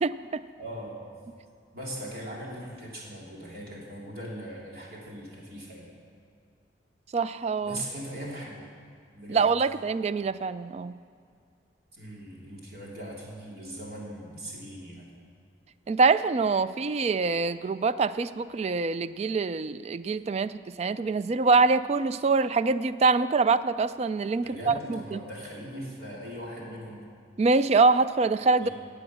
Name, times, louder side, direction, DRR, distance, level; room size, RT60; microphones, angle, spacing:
voice 1, 0.0-0.4 7.1-7.8 9.3-10.9 15.9-25.2 27.4-28.7, right 4 dB, 35° right, 15 dB, 0.3 m, -25 dB
voice 2, 0.6-1.2 1.7-5.9 7.6-8.7 9.1-9.5 11.9-15.1 24.4-27.0 28.6-28.7, right 1 dB, 55° right, -4 dB, 3.1 m, -40 dB
16.5 x 8.7 x 6.3 m, 2.3 s
head